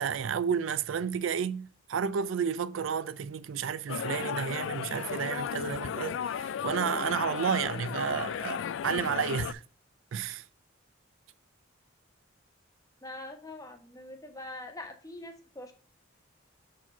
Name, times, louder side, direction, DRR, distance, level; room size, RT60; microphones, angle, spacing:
voice 1, 0.0-9.6 10.1-10.5, right 7 dB, 75° right, 0.4 m, -31 dB
sound 1, 3.9-9.5, left 8 dB, 70° left, 0.3 m, -35 dB
voice 2, 13.0-15.7, left 2 dB, 20° left, 1.1 m, -43 dB
5.8 x 4.8 x 4.4 m
head